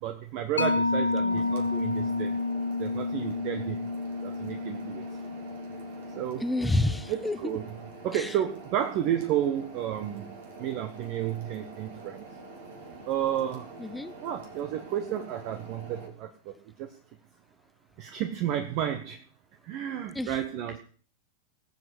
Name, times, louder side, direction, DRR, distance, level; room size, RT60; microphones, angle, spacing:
voice 1, 0.0-2.3 2.8-3.8 4.2-5.0 6.1-6.5 7.1-7.8 8.0-10.3 10.6-12.2 13.1-13.7 14.2-16.3 16.8-16.9 18.0-19.2 19.6-20.8, right 10 dB, 40° right, 7 dB, 1.4 m, -31 dB
Mallet percussion, 0.6-7.6, left 3 dB, 75° left, 1.0 m, -31 dB
sound 1, 1.3-16.1, right 3 dB, 60° right, 3.7 m, -46 dB
voice 2, 6.4-7.4 8.1-8.3 13.8-14.1 20.1-20.3, left 2 dB, 5° left, 13 dB, 1.0 m, -28 dB
19.5 x 8.1 x 6.2 m, 0.42 s
figure-of-eight pair, 90°, 0 cm